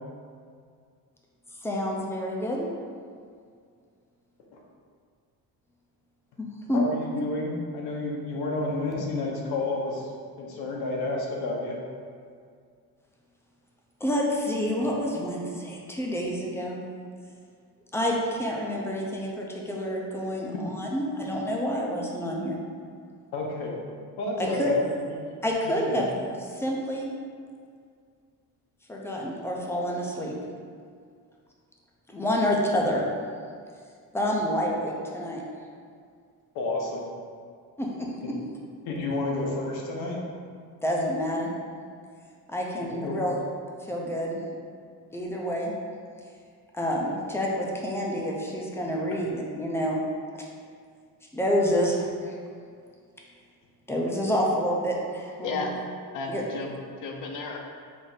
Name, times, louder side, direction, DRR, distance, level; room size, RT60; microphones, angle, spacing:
voice 1, 1.6-2.7 6.4-6.8 14.0-16.8 17.9-22.6 24.4-24.7 25.4-26.1 26.4-27.1 28.9-30.3 32.1-33.0 34.1-35.4 37.8-38.3 40.8-41.5 42.5-43.4 43.8-44.4 45.1-45.7 46.7-50.0 51.3-52.3 53.9-55.7 56.3-56.4, equal, 5° left, -2 dB, 0.4 m, -28 dB
voice 2, 6.7-10.1 10.4-11.8 23.3-23.8 24.2-24.8 25.1-25.2 25.6-26.1 36.5-37.1 38.8-40.2 42.7-43.2, left 2 dB, 80° left, -2 dB, 1.0 m, -30 dB
voice 3, 55.4-55.8 56.1-57.6, left 3 dB, 55° left, 2 dB, 0.6 m, -33 dB
5.0 x 2.5 x 3.9 m, 2.2 s
cardioid pair, 160°, 37 cm